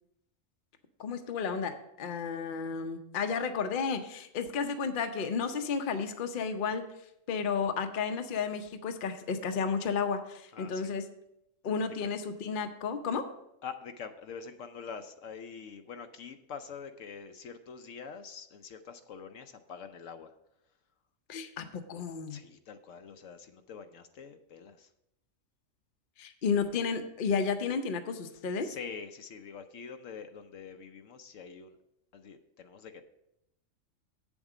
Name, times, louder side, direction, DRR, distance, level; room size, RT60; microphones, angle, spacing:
voice 1, 1.0-6.9 7.3-11.1 11.6-13.3 21.3-22.4 26.2-28.7, left 5 dB, 45° left, 7 dB, 0.8 m, -32 dB
voice 2, 10.5-10.8 13.6-20.3 22.3-24.9 28.6-31.8 32.1-33.0, left 6 dB, 75° left, 8 dB, 1.0 m, -45 dB
8.1 x 7.2 x 4.9 m, 0.82 s
omnidirectional pair, 1.4 m